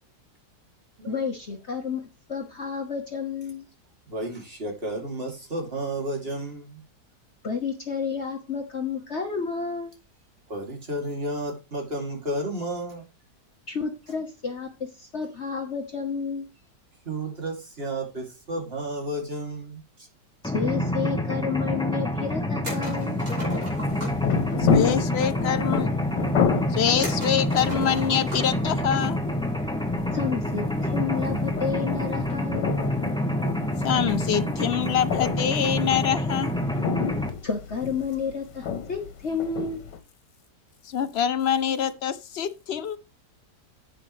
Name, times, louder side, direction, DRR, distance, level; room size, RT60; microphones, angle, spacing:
voice 1, 1.1-3.6 7.4-9.9 13.7-16.5 20.5-23.2 30.1-32.7 37.4-39.8, left 5 dB, 45° left, 1.4 m, -31 dB
voice 2, 4.1-6.8 10.5-13.0 17.0-20.1, right 1 dB, 35° right, 3.0 m, -32 dB
Mechanisms, 20.4-37.3, left 1 dB, 5° left, 1.0 m, -27 dB
sound 1, 22.6-24.3 27.0-28.6 29.0-29.1 30.7-31.0, left 1 dB, 55° right, 6.9 m, -36 dB
sound 2, 23.7-40.0, left 6 dB, 85° left, 1.6 m, -31 dB
voice 3, 24.7-25.9 26.7-29.2 33.8-36.5 40.9-43.0, left 9 dB, 60° left, 0.6 m, -25 dB
10.0 x 8.9 x 3.2 m
omnidirectional pair, 1.8 m